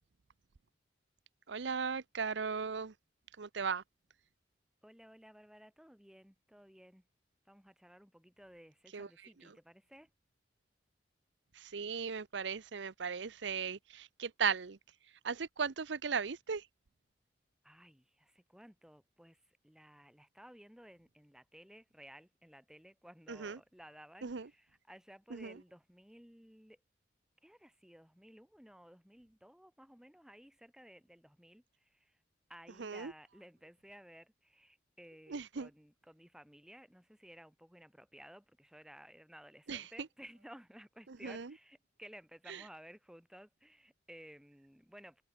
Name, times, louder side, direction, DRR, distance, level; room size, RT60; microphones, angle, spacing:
voice 1, 1.5-2.9 3.4-3.8 8.9-9.1 9.4-9.6 11.5-14.8 15.2-16.6 23.3-23.6 24.2-24.5 25.3-25.6 32.8-33.1 35.3-35.7 39.7-39.9 41.1-41.5 42.5-42.6, right 6 dB, 75° right, 0.7 m, -37 dB
voice 2, 4.8-7.0 7.5-10.1 17.6-26.8 27.4-32.1 32.5-45.2, equal, 5° right, 1.5 m, -57 dB
head